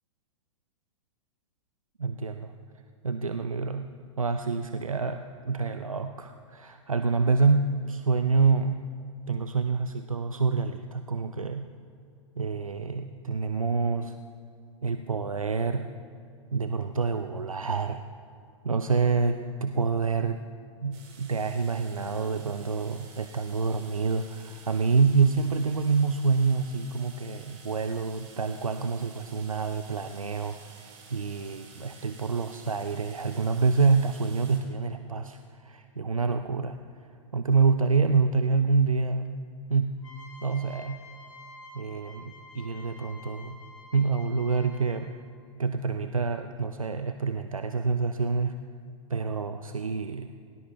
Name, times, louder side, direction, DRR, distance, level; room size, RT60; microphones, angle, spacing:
voice 1, 2.0-2.5 3.0-8.9 9.3-11.7 12.4-14.2 14.8-15.9 16.5-18.1 18.6-20.4 20.8-36.8 37.3-39.4 39.7-40.1 40.4-41.1 41.7-43.6 43.9-45.2 45.5-48.6 49.1-50.3, right 4 dB, 90° right, 9 dB, 0.6 m, -27 dB
sound 1, 20.9-34.6, right 4 dB, 35° right, 3.7 m, -51 dB
sound 2, 40.0-45.3, left 1 dB, 75° left, 3.8 m, -49 dB
19.0 x 18.5 x 3.4 m, 2.4 s
figure-of-eight pair, 105°, 17 cm